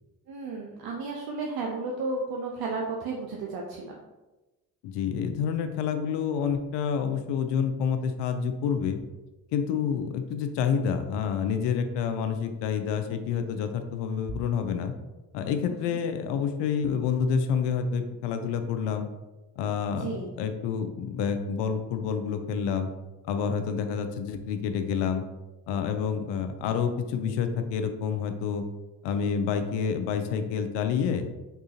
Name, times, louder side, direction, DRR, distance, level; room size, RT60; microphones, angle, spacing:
voice 1, 0.3-3.9 15.7-16.0 20.0-20.3, right 3 dB, 60° right, -1 dB, 0.6 m, -33 dB
voice 2, 4.8-9.0 9.5-14.9 15.3-19.1 19.6-22.9 23.2-25.2 25.7-28.6 29.0-31.3, left 6 dB, 75° left, 7 dB, 0.5 m, -28 dB
3.6 x 2.4 x 2.8 m, 1.1 s
hypercardioid pair, 50°, 43 cm